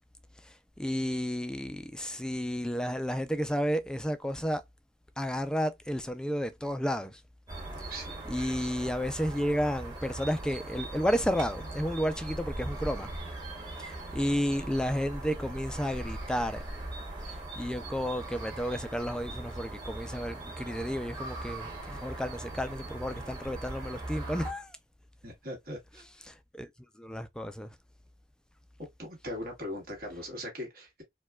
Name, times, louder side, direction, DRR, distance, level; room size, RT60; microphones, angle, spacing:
voice 1, 0.4-4.6 5.2-7.2 8.3-13.1 13.8-16.6 17.3-24.8 26.3-26.7 27.0-27.7, equal, 5° left, 0.3 m, -32 dB
sound 1, 7.5-24.5, right 2 dB, 25° right, 1.5 m, -40 dB
voice 2, 7.7-8.2 25.2-26.0 29.0-31.0, equal, 55° right, 1.6 m, -40 dB
4.4 x 2.2 x 2.2 m
head